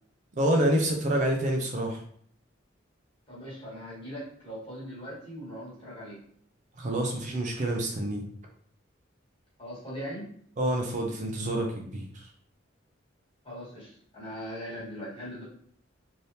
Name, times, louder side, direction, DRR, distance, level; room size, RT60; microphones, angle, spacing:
voice 1, 0.4-2.0 6.8-8.2 10.6-12.0, right 1 dB, 40° right, 1 dB, 0.5 m, -27 dB
voice 2, 3.3-6.2 9.6-10.3 13.4-15.4, equal, 30° left, -7 dB, 1.4 m, -40 dB
3.3 x 2.8 x 2.7 m, 0.62 s
head